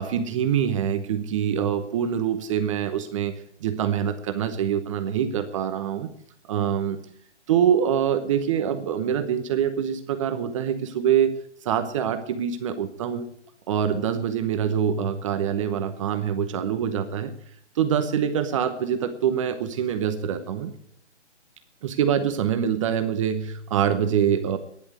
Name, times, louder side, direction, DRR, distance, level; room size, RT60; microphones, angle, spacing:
voice 1, 0.0-3.3 3.6-6.1 6.5-7.0 7.5-11.3 11.6-13.3 13.7-17.3 17.7-20.7 21.8-24.6, right 8 dB, 25° right, 8 dB, 0.9 m, -25 dB
12.0 x 10.5 x 7.8 m, 0.66 s
figure-of-eight pair, 145°, 35 cm